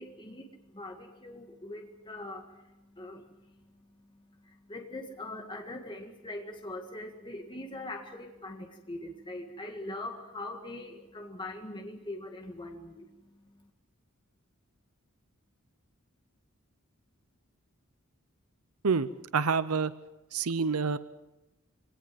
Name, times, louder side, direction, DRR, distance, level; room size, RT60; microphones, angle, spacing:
voice 1, 0.0-13.7, left 2 dB, 20° left, 3 dB, 1.8 m, -42 dB
voice 2, 18.8-19.9 20.3-21.0, right 5 dB, 90° right, 14 dB, 0.7 m, -27 dB
25.0 x 18.0 x 7.6 m, 0.98 s
head